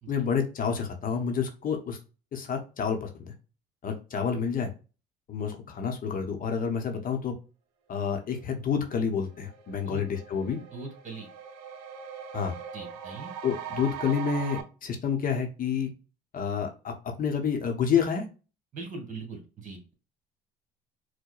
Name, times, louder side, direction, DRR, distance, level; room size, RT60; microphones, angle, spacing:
voice 1, 0.1-2.0 2.3-3.3 3.8-4.7 5.3-7.3 7.9-10.6 12.3-12.6 13.4-15.9 16.3-18.2, left 6 dB, 45° left, 5 dB, 0.8 m, -29 dB
sound 1, 8.8-8.9 9.3-14.6, right 8 dB, 85° right, 0.6 m, -41 dB
voice 2, 10.7-11.3 12.7-13.3 18.7-19.9, right 3 dB, 40° right, 3 dB, 1.6 m, -41 dB
4.5 x 2.2 x 2.4 m, 0.33 s
supercardioid pair, 75°, 20 cm